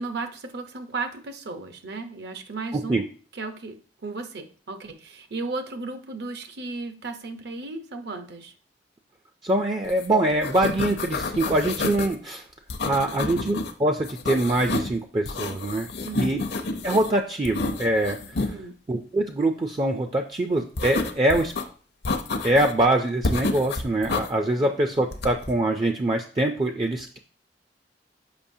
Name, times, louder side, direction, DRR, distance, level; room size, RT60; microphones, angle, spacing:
voice 1, 0.0-3.1 3.3-8.5 13.1-13.4 16.0-16.4 18.5-18.7 24.6-24.7, right 3 dB, 65° right, 7 dB, 0.8 m, -35 dB
voice 2, 9.4-12.4 12.8-15.9 16.2-16.4 16.8-18.5 18.9-21.5 22.4-27.2, right 1 dB, 25° right, 5 dB, 0.4 m, -24 dB
sound 1, 9.9-10.1 10.3-12.1 12.7-13.7 14.0-15.0 15.3-17.1 17.5-18.5 20.8-21.6 22.1-22.8 23.2-24.3 25.1-25.5, left 3 dB, 65° left, 0.7 m, -29 dB
6.9 x 5.3 x 2.7 m, 0.41 s
head